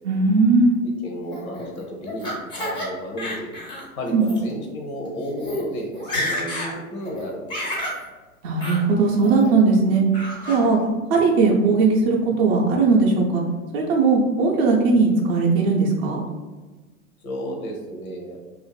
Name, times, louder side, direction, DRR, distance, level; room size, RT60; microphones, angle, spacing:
voice 1, 0.0-0.8 4.1-4.3 8.4-10.0 10.5-10.8 11.1-13.4 13.7-16.2, right 4 dB, 45° right, -1 dB, 0.5 m, -18 dB
voice 2, 1.0-3.5 4.0-7.7 10.7-10.9 17.2-18.4, equal, 75° left, 0 dB, 0.7 m, -33 dB
Laughter, 1.3-2.9 3.2-3.8 4.2-4.4 5.1-5.2 5.4-5.6 5.9-6.7 7.1-8.0 8.6-8.8 9.2-9.7 10.1-10.6, left 1 dB, 10° left, 0.4 m, -30 dB
2.5 x 2.4 x 2.3 m, 1.3 s
hypercardioid pair, 100°, 44 cm